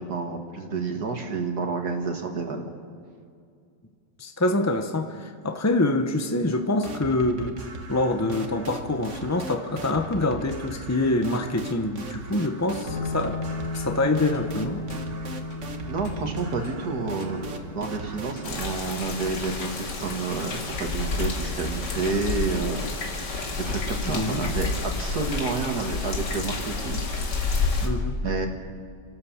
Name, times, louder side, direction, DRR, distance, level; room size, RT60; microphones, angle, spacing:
voice 1, 0.0-2.7 15.9-22.9 23.2-23.3 23.6-27.0 27.4-27.6 28.2-28.5, right 4 dB, 60° right, 4 dB, 2.0 m, -29 dB
voice 2, 4.2-7.6 7.9-13.4 13.7-14.8 24.1-24.5 27.8-28.2, left 2 dB, 25° left, 6 dB, 0.4 m, -25 dB
sound 1, 6.8-18.9, right 2 dB, 45° right, 1.6 m, -39 dB
sound 2, 12.8-24.3, left 3 dB, 55° left, 4.1 m, -37 dB
sound 3, 18.4-27.9, left 3 dB, 70° left, 2.6 m, -29 dB
28.0 x 13.0 x 7.2 m, 2.3 s
omnidirectional pair, 1.9 m